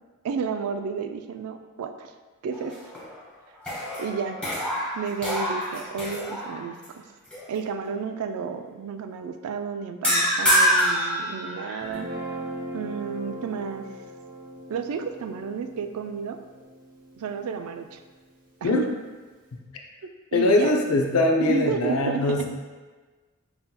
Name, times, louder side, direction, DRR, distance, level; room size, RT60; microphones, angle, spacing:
voice 1, 0.2-2.1 2.4-2.8 4.0-4.4 4.9-7.0 7.5-12.1 12.7-13.9 14.7-16.4 17.2-18.0 18.6-18.9 20.3-20.7 21.4-22.5, right 6 dB, 75° right, 8 dB, 0.3 m, -31 dB
sound 1, 2.5-3.2 3.6-6.9 7.3-7.6 10.0-12.0, equal, 5° left, 1.1 m, -26 dB
Guitar, 11.8-18.1, right 1 dB, 40° right, 0.7 m, -39 dB
voice 2, 20.3-22.5, left 2 dB, 80° left, 2 dB, 0.5 m, -22 dB
5.5 x 2.8 x 2.2 m, 1.3 s
head